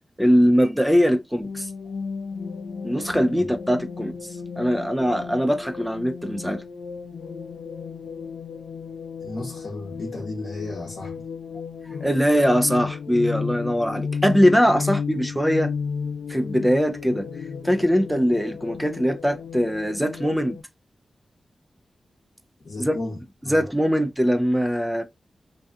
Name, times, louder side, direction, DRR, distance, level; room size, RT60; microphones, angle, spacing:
voice 1, 0.2-1.7 2.8-6.6 12.0-15.7 16.3-17.3 17.6-20.6 22.8-23.0 23.4-25.0, equal, 5° right, 0.3 m, -21 dB
sound 1, 1.4-20.6, left 5 dB, 90° left, 0.3 m, -34 dB
voice 2, 9.2-11.1 22.6-23.6, left 2 dB, 70° left, 0.7 m, -34 dB
2.6 x 2.3 x 2.3 m
cardioid pair, 75°, 0 cm